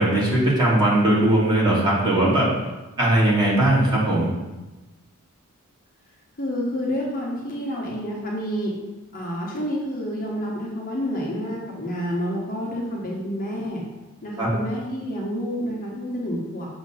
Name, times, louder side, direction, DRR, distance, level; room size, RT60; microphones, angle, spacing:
voice 1, 0.0-2.5 3.0-4.3 14.4-14.5, right 1 dB, 20° right, -7 dB, 1.7 m, -19 dB
voice 2, 6.4-8.7 9.1-13.8 14.2-16.7, equal, 40° left, -4 dB, 1.2 m, -29 dB
6.3 x 3.1 x 5.6 m, 1.1 s
head